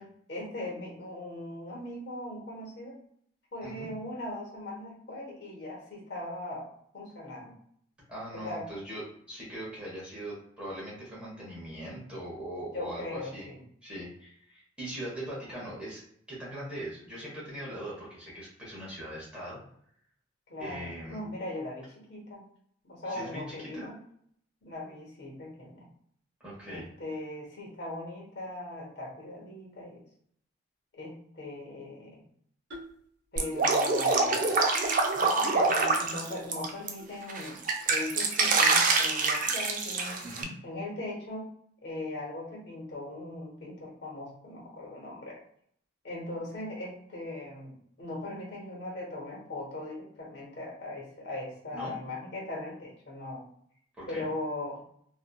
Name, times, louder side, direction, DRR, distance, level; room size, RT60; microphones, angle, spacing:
voice 1, 0.0-3.0 3.5-6.7 6.9-7.6 8.3-8.7 12.7-13.6 20.5-22.4 22.8-24.0 24.6-25.8 26.7-30.0 30.9-32.2 33.3-34.6 35.1-40.2 40.6-41.5 41.8-45.4 46.0-53.4 54.1-54.8, left 1 dB, 60° left, -2 dB, 1.0 m, -39 dB
voice 2, 3.6-3.9 8.1-13.5 13.8-16.0 16.3-19.6 20.6-21.2 23.1-23.9 26.4-26.9 40.2-40.5 51.7-52.0 54.0-54.3, right 1 dB, 5° right, -7 dB, 1.0 m, -40 dB
sound 1, 32.7-33.0 33.4-33.7 34.1-34.4 34.8-35.1 35.5-35.6 36.3-36.4 37.0-37.1 37.8-37.9 38.5-38.7, left 1 dB, 60° right, 0.8 m, -46 dB
Drip, 33.4-36.9 37.3-40.4, right 3 dB, 40° right, 0.3 m, -26 dB
2.9 x 2.4 x 2.2 m, 0.66 s
head